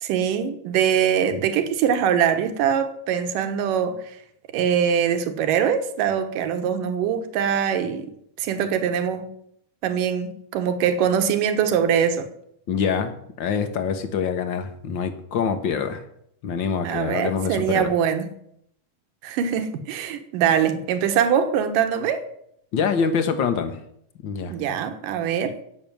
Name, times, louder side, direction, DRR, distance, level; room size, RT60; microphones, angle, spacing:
voice 1, 0.0-4.0 4.5-8.1 8.4-9.3 9.8-12.3 16.8-18.3 19.2-22.2 24.5-25.6, right 8 dB, 75° right, 8 dB, 2.9 m, -23 dB
voice 2, 12.7-16.0 16.4-17.9 22.7-23.8 24.2-24.5, left 6 dB, 70° left, 8 dB, 1.1 m, -25 dB
16.5 x 6.8 x 9.1 m, 0.71 s
omnidirectional pair, 3.9 m